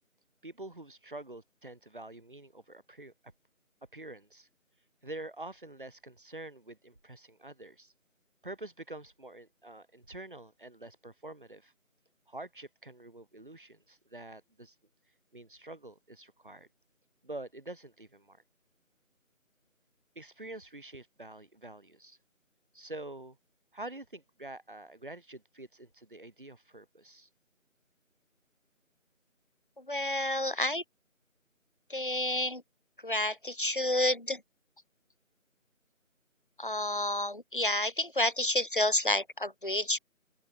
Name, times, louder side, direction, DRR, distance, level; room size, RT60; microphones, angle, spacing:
voice 1, 0.4-3.1 3.9-4.5 5.0-7.9 8.4-11.7 12.3-14.8 15.3-16.7 17.2-18.4 20.2-22.2 22.7-23.4 23.7-27.3, right 2 dB, 40° right, 2.1 m, -46 dB
voice 2, 29.8-30.8 31.9-32.6 33.0-34.4 36.6-40.0, left 1 dB, 40° left, 1.2 m, -30 dB
open air
figure-of-eight pair, 170°, 41 cm